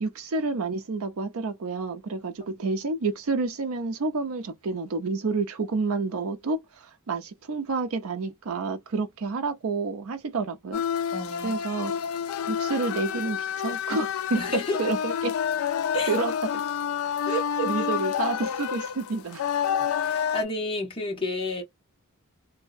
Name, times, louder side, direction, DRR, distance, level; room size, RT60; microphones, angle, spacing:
voice 1, 0.0-10.8 11.4-11.9 12.5-15.3 16.1-16.5 17.3-19.4, right 4 dB, 65° right, 0.5 m, -29 dB
sound 1, 10.7-20.4, left 8 dB, 65° left, 0.3 m, -29 dB
voice 2, 11.1-11.5 14.3-14.8 15.9-16.1 17.3-17.9 20.0-21.6, equal, 25° left, 1.2 m, -31 dB
2.6 x 2.1 x 2.4 m
head